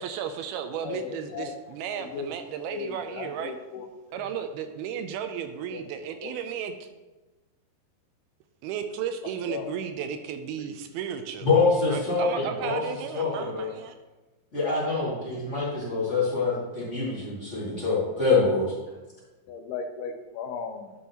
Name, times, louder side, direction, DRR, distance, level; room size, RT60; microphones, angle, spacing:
voice 1, 0.0-3.6 4.1-6.9 8.6-11.5 11.9-14.0, right 8 dB, 80° right, 7 dB, 2.4 m, -34 dB
voice 2, 0.8-1.5 1.9-2.3 2.6-3.9 4.1-4.2 5.7-5.8 6.2-6.3 9.2-9.8 10.6-10.8 19.5-20.9, left 6 dB, 85° left, 7 dB, 2.5 m, -37 dB
voice 3, 11.4-12.8 13.1-13.7 14.5-18.6, left 4 dB, 25° left, -8 dB, 1.5 m, -25 dB
11.0 x 6.2 x 2.9 m, 1.2 s
omnidirectional pair, 4.6 m